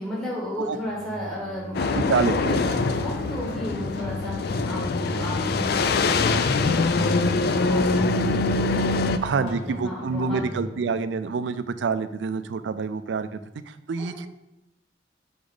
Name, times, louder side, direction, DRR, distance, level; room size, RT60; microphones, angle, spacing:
voice 1, 0.0-2.0 2.3-10.4 14.0-14.2, left 1 dB, 10° left, -7 dB, 1.8 m, -34 dB
sound 1, 0.6-12.2, equal, 45° right, 1.1 m, -38 dB
sound 2, 1.7-9.2, left 3 dB, 60° left, 0.4 m, -24 dB
voice 2, 2.1-2.6 9.2-13.4 13.7-14.3, right 5 dB, 75° right, 12 dB, 0.4 m, -27 dB
sound 3, 2.7-3.6 4.0-9.6, equal, 90° left, 1.3 m, -37 dB
6.0 x 4.1 x 4.9 m, 0.85 s
head